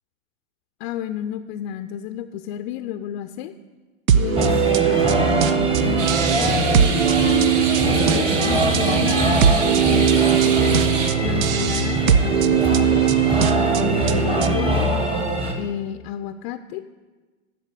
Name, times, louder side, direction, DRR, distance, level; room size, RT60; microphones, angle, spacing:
voice 1, 0.8-3.5 4.2-6.9 7.2-10.8 11.2-13.1 13.8-14.9 15.6-16.8, left 11 dB, 40° left, 8 dB, 0.5 m, -31 dB
sound 1, 4.1-14.7, right 10 dB, 80° right, 0.7 m, -20 dB
sound 2, 4.4-15.5, equal, 15° right, 1.4 m, -23 dB
sound 3, 6.0-11.1, right 5 dB, 65° right, 1.5 m, -29 dB
11.0 x 7.2 x 7.5 m, 1.3 s
hypercardioid pair, 120°, 40 cm